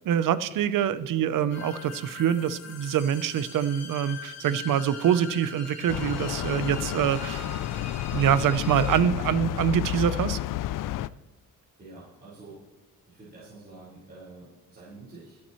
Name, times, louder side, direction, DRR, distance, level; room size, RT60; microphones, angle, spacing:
voice 1, 0.1-7.5 7.7-7.8 8.1-10.4, right 9 dB, 75° right, 14 dB, 0.8 m, -25 dB
sound 1, 1.5-9.0, left 4 dB, 50° left, 3.2 m, -43 dB
sound 2, 5.9-11.1, left 14 dB, 70° left, 0.5 m, -31 dB
voice 2, 11.8-12.6 13.1-15.4, right 3 dB, 30° right, -9 dB, 5.1 m, -47 dB
25.0 x 8.6 x 3.2 m, 1.2 s
cardioid pair, 145°, 33 cm